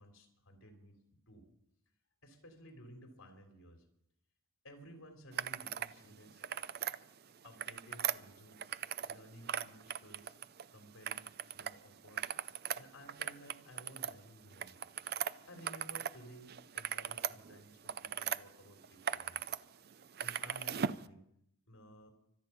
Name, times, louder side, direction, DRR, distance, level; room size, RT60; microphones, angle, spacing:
voice 1, 0.0-1.5 2.2-3.8 4.6-6.4 7.4-8.6 9.1-10.4 10.7-12.3 12.8-14.7 15.5-19.5 20.2-21.2 21.7-22.1, equal, 65° left, 3 dB, 3.4 m, -56 dB
sound 1, 5.3-5.9 6.3-7.0 7.4-9.2 9.4-10.6 11.0-11.7 12.0-16.2 16.5-18.4 18.8-19.6 19.9-21.0, right 9 dB, 45° right, 0.5 m, -38 dB
24.5 x 8.9 x 5.8 m, 0.73 s
head